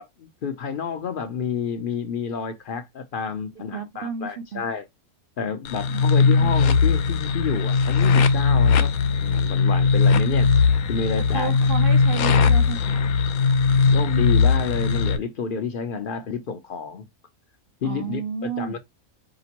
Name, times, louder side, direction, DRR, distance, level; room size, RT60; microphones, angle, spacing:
voice 1, 0.2-4.9 5.4-8.9 9.2-10.5 10.9-11.5 13.7-17.1 17.8-18.8, left 6 dB, 55° left, 0.6 m, -29 dB
voice 2, 3.7-4.6 5.9-6.0 6.3-6.5 11.3-13.0 17.8-18.8, right 7 dB, 65° right, 0.5 m, -32 dB
sound 1, 5.6-15.2, left 5 dB, 85° left, 1.1 m, -19 dB
5.0 x 2.9 x 2.8 m
omnidirectional pair, 1.5 m